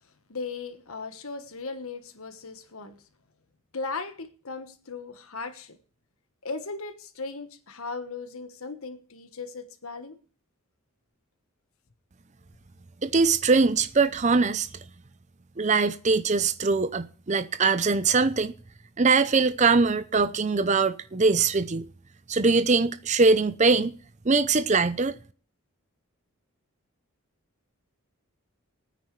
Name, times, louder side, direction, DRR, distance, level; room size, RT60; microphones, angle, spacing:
voice 1, 0.3-2.9 3.7-5.8 6.4-10.2, left 4 dB, 75° left, 1.3 m, -37 dB
voice 2, 13.0-14.7 15.6-18.5 19.0-21.8 22.3-24.0 24.3-25.1, right 4 dB, 30° right, 0.6 m, -22 dB
21.0 x 9.4 x 3.2 m
head